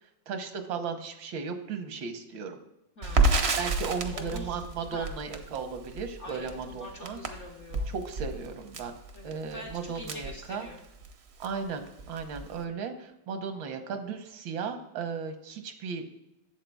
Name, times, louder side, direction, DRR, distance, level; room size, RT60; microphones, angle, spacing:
voice 1, 0.3-2.6 3.6-7.2 7.9-8.9 9.2-10.7 11.4-16.1, right 5 dB, 85° right, 6 dB, 1.6 m, -36 dB
voice 2, 3.0-3.5 3.8-4.6 4.9-5.1 6.2-7.9 9.1-10.8, left 1 dB, 60° left, 0 dB, 0.7 m, -44 dB
Crackle, 3.0-11.1 11.4-11.6 11.9-12.6, right 3 dB, 70° right, 0.6 m, -30 dB
11.5 x 7.4 x 2.3 m, 0.90 s
omnidirectional pair, 2.1 m